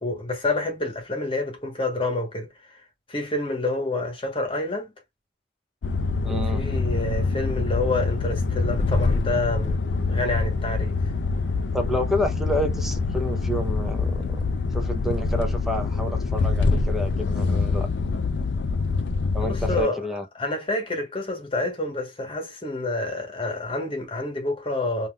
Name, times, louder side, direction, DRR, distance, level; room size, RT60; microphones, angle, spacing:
voice 1, 0.0-2.8 3.1-4.9 6.3-11.0 19.4-20.1 20.3-25.1, left 2 dB, 30° left, 1.2 m, -28 dB
sound 1, 5.8-19.8, left 3 dB, 75° left, 0.4 m, -25 dB
voice 2, 6.2-6.6 11.7-14.4 14.7-17.9 19.3-20.2, left 1 dB, ahead, 0.7 m, -29 dB
3.6 x 2.7 x 2.3 m
head